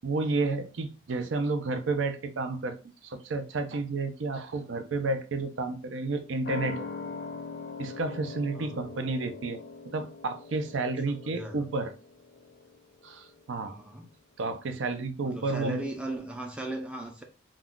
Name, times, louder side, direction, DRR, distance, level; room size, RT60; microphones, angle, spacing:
voice 1, 0.0-2.8 3.0-6.9 7.8-9.6 9.9-11.9 13.0-13.8 14.4-15.8, right 3 dB, 85° right, 0.5 m, -31 dB
sound 1, 6.4-13.5 13.8-13.9, left 4 dB, 50° left, 0.4 m, -42 dB
voice 2, 11.1-11.7 13.6-14.1 15.2-17.2, right 2 dB, 5° right, 0.4 m, -37 dB
2.3 x 2.3 x 3.6 m
head